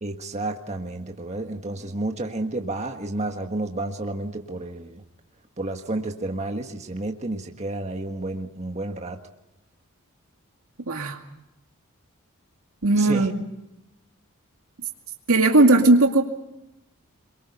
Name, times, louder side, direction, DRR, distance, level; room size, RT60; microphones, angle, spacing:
voice 1, 0.0-5.0 5.6-9.2 13.0-13.2, right 2 dB, 30° right, 4 dB, 1.6 m, -31 dB
voice 2, 10.9-11.2 12.8-13.4 15.3-16.2, right 2 dB, 75° right, 3 dB, 2.3 m, -17 dB
27.0 x 23.0 x 5.5 m, 0.91 s
head